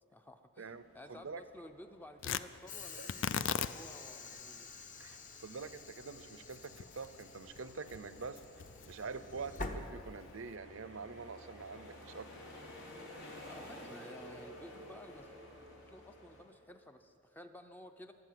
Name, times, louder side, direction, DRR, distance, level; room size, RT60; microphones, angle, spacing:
voice 1, 0.1-4.8 13.5-15.3 15.9-18.1, left 1 dB, 10° left, 7 dB, 0.5 m, -54 dB
sound 1, 0.7-16.4, equal, 85° left, 3.2 m, -54 dB
voice 2, 1.1-1.4 3.0-3.1 5.0-8.4 8.9-12.3, right 4 dB, 70° right, 13 dB, 0.6 m, -45 dB
Tearing, 2.2-10.5, left 8 dB, 65° left, 0.4 m, -42 dB
Train / Sliding door, 2.7-10.6, left 3 dB, 35° left, 0.9 m, -48 dB
22.0 x 8.0 x 7.6 m, 2.6 s
head